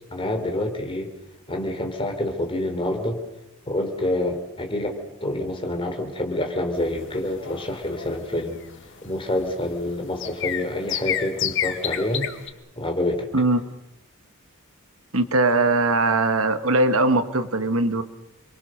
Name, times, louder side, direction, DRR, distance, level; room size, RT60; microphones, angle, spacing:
voice 1, 0.1-1.1 1.5-3.2 3.7-8.6 9.0-12.3 12.8-13.3, left 1 dB, 25° left, 4 dB, 3.9 m, -27 dB
sound 1, 6.8-12.5, left 10 dB, 60° left, 1.7 m, -30 dB
voice 2, 15.1-18.0, right 2 dB, 70° right, 9 dB, 1.6 m, -20 dB
29.0 x 23.0 x 6.6 m, 0.91 s
head